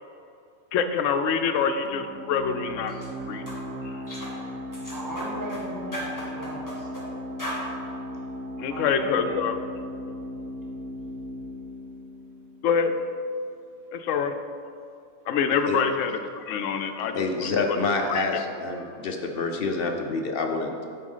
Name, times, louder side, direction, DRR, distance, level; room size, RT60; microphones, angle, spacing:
voice 1, 0.7-2.9 3.3-3.4 8.6-9.5 12.6-12.9 13.9-14.3 15.3-16.1 16.4-17.8 18.1-18.2, left 6 dB, 90° left, 8 dB, 1.0 m, -25 dB
sound 1, 1.8-13.2, left 1 dB, 65° right, 1.0 m, -37 dB
sound 2, 2.9-3.1 3.5-3.6 4.1-4.3 4.7-5.6 5.9-7.1 7.4-7.6, equal, 15° left, 2.1 m, -36 dB
voice 2, 4.9-6.9 8.7-9.4, right 1 dB, 15° right, -3 dB, 1.2 m, -37 dB
voice 3, 15.7-16.0 16.5-16.7 17.1-20.8, left 3 dB, 55° left, 3 dB, 0.8 m, -28 dB
8.2 x 4.7 x 5.4 m, 2.4 s
omnidirectional pair, 1.3 m